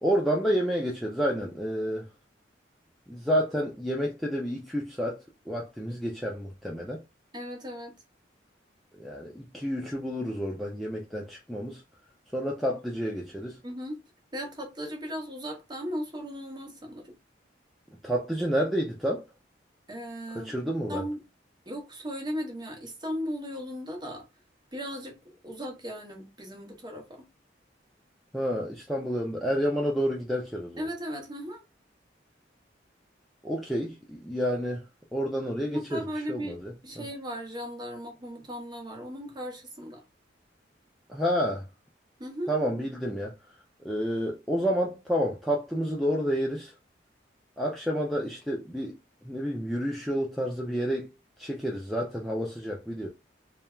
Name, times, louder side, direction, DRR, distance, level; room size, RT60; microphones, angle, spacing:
voice 1, 0.0-2.1 3.1-7.0 9.0-11.8 12.3-13.6 18.0-19.3 20.3-21.0 28.3-30.9 33.4-34.8 35.1-37.0 41.1-41.6 42.5-43.4 43.8-46.7 47.6-49.0 49.2-51.1 51.4-53.1, equal, ahead, 0.3 m, -29 dB
voice 2, 7.3-8.0 12.7-12.8 13.6-14.0 14.3-17.1 19.9-20.5 20.9-21.2 21.7-24.3 24.7-25.2 25.4-27.3 30.8-31.6 35.7-40.0 42.2-42.5, equal, 25° right, 0.7 m, -37 dB
3.1 x 2.1 x 2.3 m
head